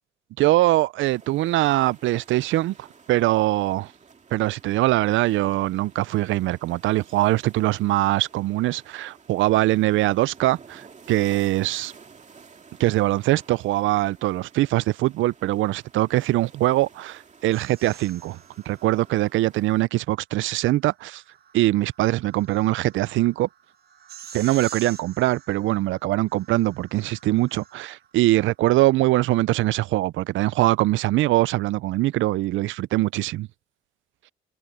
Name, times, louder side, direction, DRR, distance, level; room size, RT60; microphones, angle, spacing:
voice 1, 0.4-3.9 4.3-11.9 12.8-18.4 18.7-21.2 21.5-23.5 24.3-33.5, right 17 dB, 80° right, 0.4 m, -22 dB
sound 1, 1.0-19.8, right 5 dB, 35° right, 2.3 m, -52 dB
sound 2, 17.5-19.5 20.9-28.1, right 7 dB, 50° right, 1.4 m, -47 dB
cardioid pair, 90°, 20 cm